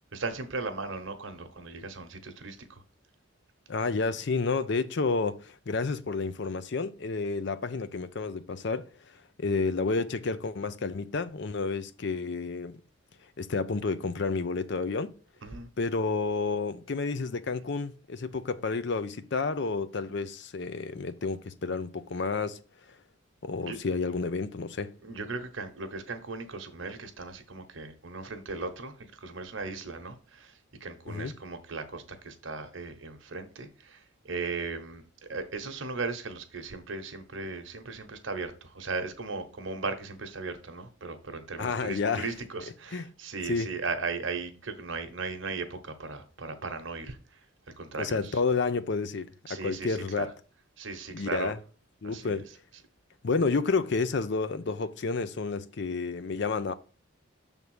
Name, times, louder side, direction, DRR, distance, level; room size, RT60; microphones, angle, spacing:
voice 1, 0.1-2.6 15.4-15.7 23.6-23.8 25.0-28.9 29.2-30.5 30.8-34.0 34.2-35.0 35.3-47.2 47.8-48.2 49.5-50.3 50.8-51.5 52.0-52.4, right 4 dB, 65° right, 1.1 m, -37 dB
voice 2, 3.7-8.9 9.4-12.8 13.4-15.1 15.8-22.6 23.4-24.9 31.1-31.4 41.6-42.3 42.9-43.1 43.4-43.7 48.0-50.3 51.1-51.6 52.0-52.5 53.2-56.7, left 4 dB, 55° left, 0.5 m, -30 dB
6.7 x 3.6 x 6.2 m
head